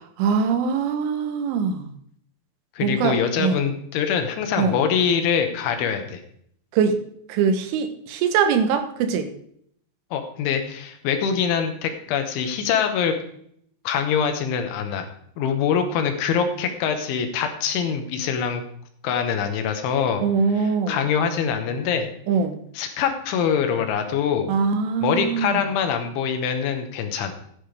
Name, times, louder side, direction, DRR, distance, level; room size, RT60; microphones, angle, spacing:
voice 1, 0.2-1.9 2.8-3.7 4.6-4.8 6.7-7.0 7.3-9.3 20.2-21.0 22.3-22.6 24.5-25.6, right 6 dB, 90° right, 7 dB, 3.7 m, -22 dB
voice 2, 2.8-6.2 10.1-13.2 13.9-15.1 15.4-18.6 19.0-20.2 20.5-22.1 22.8-24.5 25.0-27.3, left 7 dB, 80° left, 6 dB, 3.6 m, -24 dB
15.5 x 10.0 x 3.4 m, 0.67 s
omnidirectional pair, 5.4 m